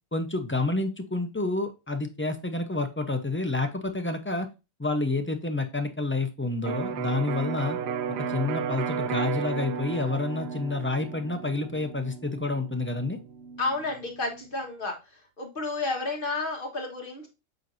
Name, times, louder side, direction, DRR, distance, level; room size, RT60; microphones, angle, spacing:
voice 1, 0.1-4.5 4.8-7.8 8.2-13.2, left 2 dB, 15° left, 6 dB, 0.5 m, -29 dB
Electric guitar, 6.6-14.4, right 7 dB, 65° right, 0.8 m, -34 dB
voice 2, 13.6-14.9 15.4-17.3, left 3 dB, 45° left, 1 dB, 1.6 m, -31 dB
7.9 x 4.5 x 2.6 m, 0.28 s
omnidirectional pair, 1.3 m